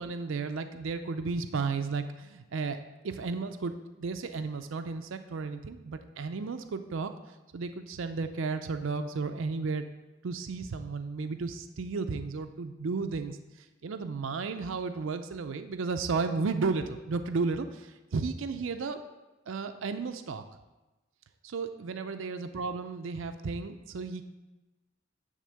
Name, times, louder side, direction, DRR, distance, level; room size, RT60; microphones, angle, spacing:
voice 1, 0.0-2.8 3.0-7.1 7.5-9.9 10.2-13.4 13.8-19.0 19.5-20.4 21.4-24.2, right 4 dB, 70° right, 8 dB, 0.5 m, -33 dB
10.0 x 3.7 x 6.4 m, 1.1 s
head